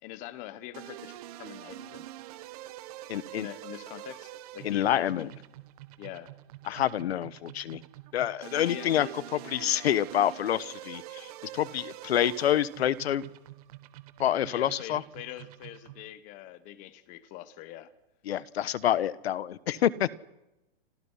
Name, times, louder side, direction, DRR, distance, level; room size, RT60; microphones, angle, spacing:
voice 1, 0.0-2.1 3.3-5.3 6.0-6.3 8.6-9.2 14.5-17.9, left 13 dB, 25° left, 1.4 m, -43 dB
sound 1, 0.7-16.1, right 14 dB, 40° right, 1.6 m, -46 dB
voice 2, 3.1-3.5 4.6-5.3 6.7-7.8 8.1-9.1 9.5-13.3 14.2-15.0 18.3-20.1, left 11 dB, 90° left, 1.3 m, -27 dB
29.0 x 27.0 x 5.8 m
supercardioid pair, 170°, 30 cm